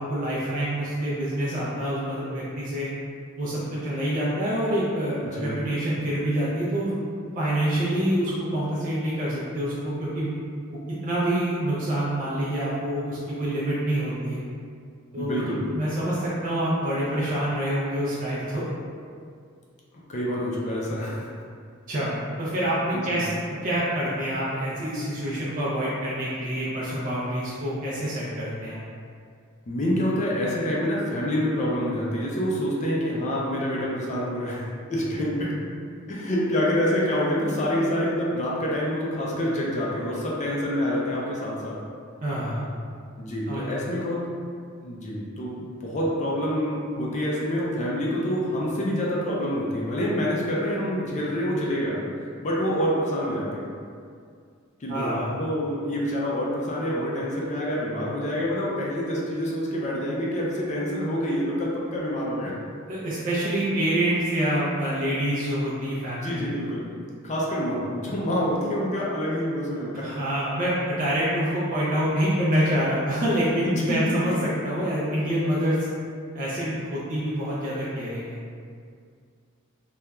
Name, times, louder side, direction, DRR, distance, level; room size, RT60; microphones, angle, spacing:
voice 1, 0.0-2.9 3.4-7.0 7.4-10.4 10.9-14.4 15.1-18.6 21.9-22.1 22.4-23.3 23.6-28.8 42.2-42.7 43.5-43.6 54.9-55.3 62.9-66.4 70.0-75.8 76.3-78.4, right 1 dB, 40° right, -8 dB, 0.4 m, -26 dB
voice 2, 15.2-15.6 20.1-21.3 23.1-23.2 29.7-35.5 36.1-41.8 43.2-44.2 44.8-53.7 54.8-62.5 66.1-66.9 67.2-70.1 73.6-74.0, equal, 35° left, -5 dB, 0.4 m, -27 dB
2.9 x 2.3 x 2.2 m, 2.2 s
head